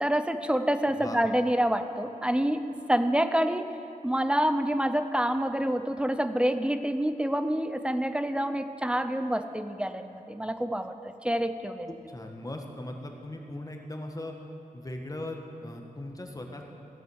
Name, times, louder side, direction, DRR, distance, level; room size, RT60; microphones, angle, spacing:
voice 1, 0.0-3.7 4.0-11.9, equal, 5° right, 9 dB, 0.6 m, -27 dB
voice 2, 11.9-14.3 14.7-16.6, left 1 dB, 25° left, 3 dB, 1.3 m, -39 dB
15.5 x 7.9 x 6.3 m, 2.9 s
wide cardioid pair, 100°, 14 cm